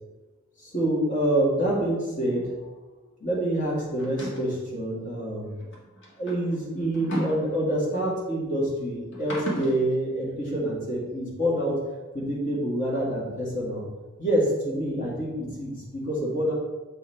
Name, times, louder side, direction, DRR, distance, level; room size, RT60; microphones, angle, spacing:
voice 1, 0.6-2.7 3.2-5.5 6.2-11.8 12.1-13.8 14.2-16.5, right 1 dB, 40° left, -4 dB, 2.1 m, -27 dB
sound 1, 4.0-4.5 5.6-8.0 9.1-9.8, equal, 65° left, 1.7 m, -34 dB
7.0 x 4.6 x 4.4 m, 1.2 s
head